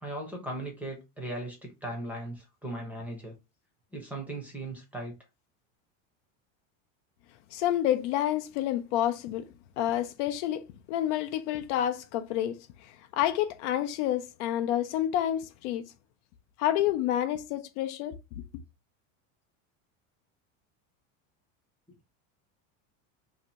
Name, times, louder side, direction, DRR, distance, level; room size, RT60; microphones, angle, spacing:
voice 1, 0.0-3.3 3.9-5.1, right 1 dB, 5° right, 0.7 m, -38 dB
voice 2, 7.5-9.5 9.8-12.7 13.1-15.8 16.6-18.1, left 12 dB, 60° left, 0.5 m, -29 dB
2.8 x 2.6 x 4.2 m
supercardioid pair, 155°, 40 cm